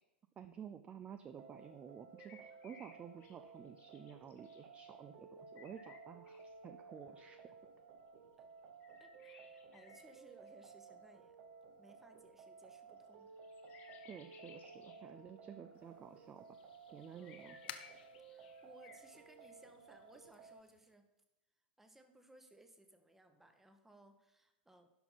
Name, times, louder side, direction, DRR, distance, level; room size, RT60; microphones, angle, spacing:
voice 1, 0.4-7.4 14.0-16.5 16.9-17.6, right 8 dB, 20° right, 10 dB, 0.4 m, -52 dB
sound 1, 1.3-20.6, right 4 dB, 45° right, 0.7 m, -57 dB
sound 2, 2.2-3.4 3.6-4.6 5.6-6.4 6.7-7.5 8.8-10.6 13.4-15.0 15.5-16.0 17.2-18.0 18.3-19.0 19.4-19.5, left 5 dB, 30° left, 1.2 m, -61 dB
voice 2, 9.0-11.4 11.7-13.3 14.9-15.0 17.1-17.4 18.3-21.1 21.8-24.9, right 1 dB, 5° right, 7 dB, 0.9 m, -63 dB
sound 3, 15.7-20.9, left 9 dB, 60° left, 0.7 m, -57 dB
11.0 x 5.8 x 4.0 m, 0.95 s
figure-of-eight pair, 95°, 6 cm